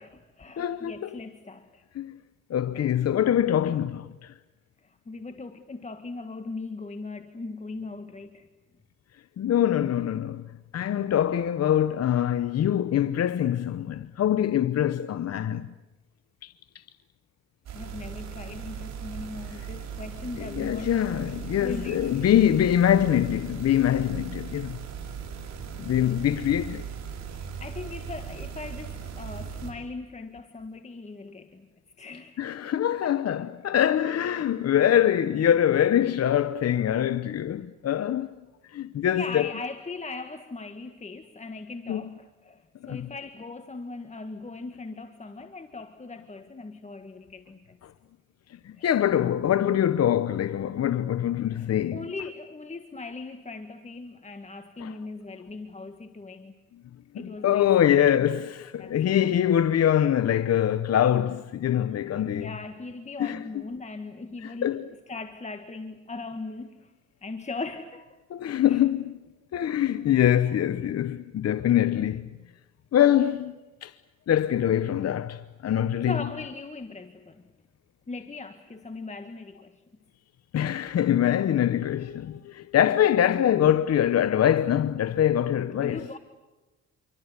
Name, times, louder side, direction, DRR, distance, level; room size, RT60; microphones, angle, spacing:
voice 1, 0.0-1.8 4.8-8.5 17.7-22.6 27.3-31.7 32.0-32.4 33.0-33.2 39.1-47.8 48.8-48.9 51.5-56.5 57.1-58.3 58.8-59.1 62.1-66.9 67.2-68.2 68.5-68.9 76.0-77.4 78.1-79.8 85.8-86.2, left 3 dB, 25° left, 1.8 m, -39 dB
voice 2, 0.6-1.1 2.0-2.1 2.5-4.3 9.4-10.5 10.7-15.7 16.4-16.5 20.4-24.8 25.8-26.8 32.4-38.3 38.7-39.5 41.9-42.0 42.9-43.1 48.6-52.1 54.8-54.9 57.1-62.5 63.2-63.4 64.4-64.8 68.3-69.1 69.5-72.2 72.9-73.5 73.8-73.9 74.3-76.2 80.5-86.0, left 10 dB, 55° left, 0.9 m, -24 dB
sound 1, 17.7-29.7, right 7 dB, 60° right, 6.9 m, -38 dB
28.5 x 24.0 x 8.2 m
cardioid pair, 90°, 30 cm